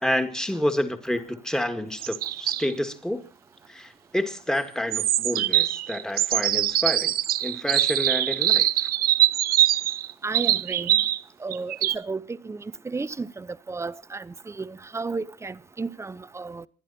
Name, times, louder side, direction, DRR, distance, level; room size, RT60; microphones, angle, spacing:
voice 1, 0.0-3.2 3.7-7.2 7.4-8.9, left 1 dB, 5° left, 2.1 m, -29 dB
sound 1, 2.0-2.7 4.9-11.2 11.5-11.9, right 13 dB, 60° right, 0.7 m, -23 dB
voice 2, 10.2-11.0 11.4-16.7, right 4 dB, 15° right, 0.7 m, -33 dB
27.5 x 11.0 x 4.2 m
cardioid pair, 110°, 17 cm